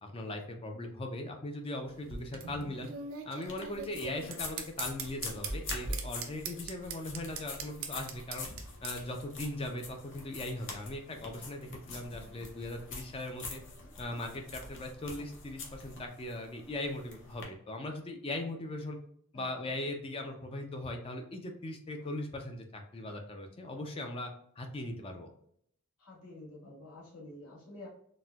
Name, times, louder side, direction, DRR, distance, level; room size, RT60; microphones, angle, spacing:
voice 1, 0.0-2.9 3.2-8.5 8.8-13.6 14.0-19.0 19.3-24.3 24.6-25.3, left 1 dB, 25° left, 4 dB, 0.4 m, -39 dB
sound 1, 1.9-8.9, right 6 dB, 60° right, 0.5 m, -42 dB
voice 2, 2.6-2.9 19.3-19.8 26.0-27.9, left 2 dB, 75° left, -4 dB, 1.1 m, -49 dB
sound 2, 3.5-17.4, left 2 dB, 55° left, 0.7 m, -44 dB
4.0 x 2.1 x 2.2 m, 0.68 s
head